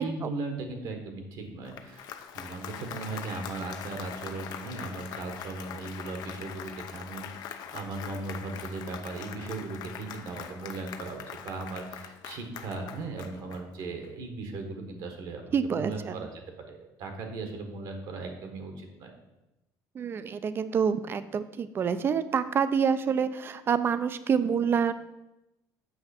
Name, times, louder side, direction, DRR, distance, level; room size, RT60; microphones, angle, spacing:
voice 1, 0.0-2.1 2.3-16.4 16.7-19.1, right 3 dB, 65° right, 4 dB, 1.4 m, -37 dB
Applause, 1.5-14.1, left 9 dB, 70° left, 0.6 m, -42 dB
voice 2, 15.5-16.1 20.0-24.9, right 6 dB, 30° right, 13 dB, 0.4 m, -27 dB
7.8 x 5.8 x 4.3 m, 0.96 s
cardioid pair, 140°, 7 cm